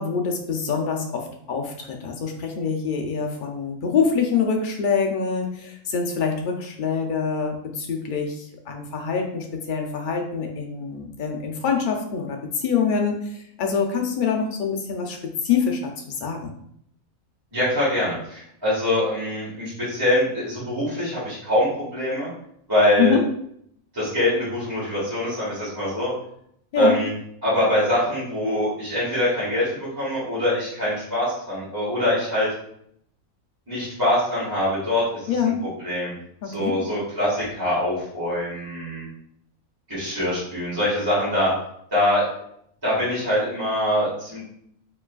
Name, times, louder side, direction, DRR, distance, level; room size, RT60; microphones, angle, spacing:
voice 1, 0.0-15.9 16.2-16.5 23.0-23.2 26.7-27.0 35.3-35.6 36.4-36.8, left 6 dB, 85° left, 2 dB, 0.4 m, -25 dB
voice 2, 17.5-22.3 22.7-23.2 23.9-26.1 26.7-27.1 27.4-32.5 33.7-35.4 35.8-36.1 36.4-39.0 39.9-41.5 41.9-42.3 42.8-44.4, left 1 dB, 15° right, -11 dB, 1.6 m, -23 dB
4.5 x 3.1 x 2.3 m, 0.70 s
omnidirectional pair, 1.5 m